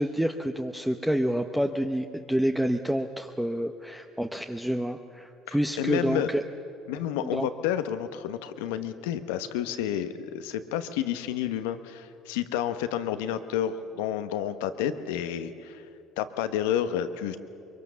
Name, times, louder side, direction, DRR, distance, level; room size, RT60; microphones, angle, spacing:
voice 1, 0.0-6.4 7.2-7.5, equal, 5° right, 4 dB, 1.0 m, -28 dB
voice 2, 5.5-6.3 6.9-15.8 16.2-17.4, left 10 dB, 80° left, 10 dB, 1.1 m, -30 dB
23.0 x 23.0 x 7.1 m, 2.6 s
hypercardioid pair, 75°, 0 cm